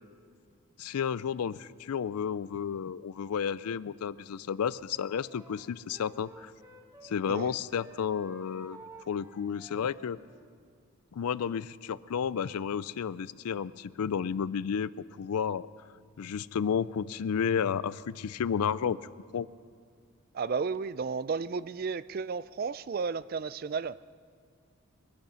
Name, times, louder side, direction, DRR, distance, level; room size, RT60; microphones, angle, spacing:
voice 1, 0.8-6.5 7.0-10.2 11.1-14.9 15.2-15.7 16.2-19.0 19.3-19.5, left 7 dB, 85° left, 18 dB, 0.4 m, -32 dB
Wind instrument woodwind instrument, 4.9-7.5 7.7-10.5, right 2 dB, 15° right, 1.3 m, -53 dB
voice 2, 20.3-24.0, right 5 dB, 40° right, 17 dB, 0.3 m, -33 dB
23.0 x 10.5 x 5.7 m, 2.1 s
head